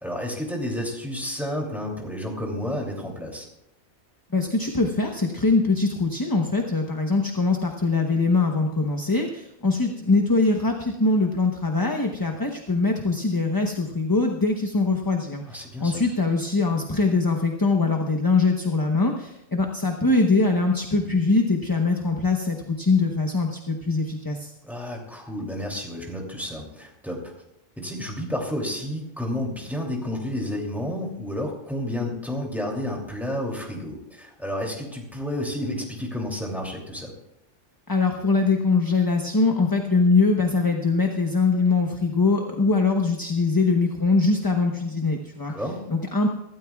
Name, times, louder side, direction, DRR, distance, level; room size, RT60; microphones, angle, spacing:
voice 1, 0.0-3.5 15.5-16.0 24.6-27.3 27.8-37.1 45.5-45.8, left 1 dB, ahead, -1 dB, 2.8 m, -31 dB
voice 2, 4.3-24.5 37.9-45.5 45.9-46.3, left 3 dB, 20° left, 2 dB, 0.9 m, -22 dB
24.0 x 13.0 x 2.4 m, 0.83 s
omnidirectional pair, 1.3 m